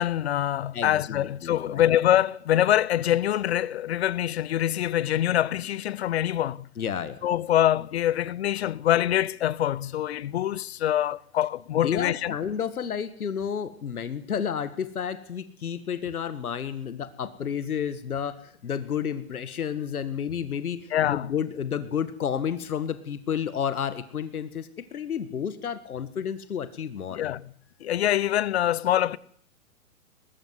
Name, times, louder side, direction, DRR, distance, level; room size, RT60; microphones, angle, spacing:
voice 1, 0.0-6.7 7.2-12.3 20.9-21.3 27.1-27.4 27.8-29.2, left 12 dB, 45° left, 0.8 m, -24 dB
voice 2, 0.7-1.8 6.8-7.2 11.8-27.2, left 8 dB, 80° left, 1.9 m, -31 dB
20.0 x 15.5 x 9.7 m
hypercardioid pair, 145°, 43 cm